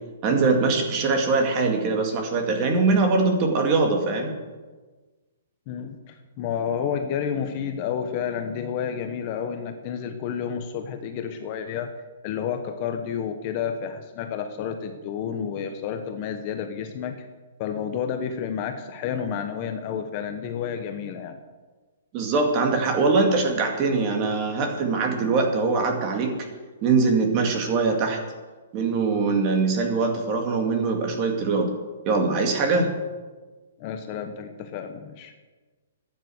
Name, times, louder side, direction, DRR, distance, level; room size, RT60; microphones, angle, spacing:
voice 1, 0.2-4.3 22.1-26.3 26.8-28.2 28.7-31.7 32.1-32.9, right 4 dB, 25° right, 3 dB, 2.1 m, -22 dB
voice 2, 5.7-11.9 12.2-17.1 17.6-21.4 33.8-35.3, left 7 dB, 25° left, 6 dB, 0.9 m, -30 dB
15.0 x 9.6 x 7.9 m, 1.3 s
hypercardioid pair, 170°, 0 cm